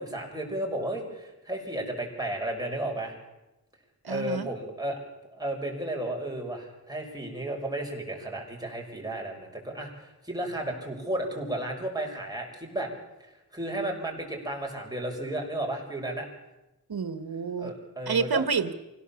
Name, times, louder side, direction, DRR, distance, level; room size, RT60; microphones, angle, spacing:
voice 1, 0.0-3.1 4.1-5.0 5.3-12.9 13.5-16.3 17.6-18.4, right 1 dB, 10° right, 0 dB, 5.8 m, -33 dB
voice 2, 4.0-4.5 16.9-17.7 18.1-18.7, right 5 dB, 80° right, 10 dB, 1.6 m, -28 dB
26.0 x 17.0 x 7.2 m, 1.0 s
wide cardioid pair, 75°, 37 cm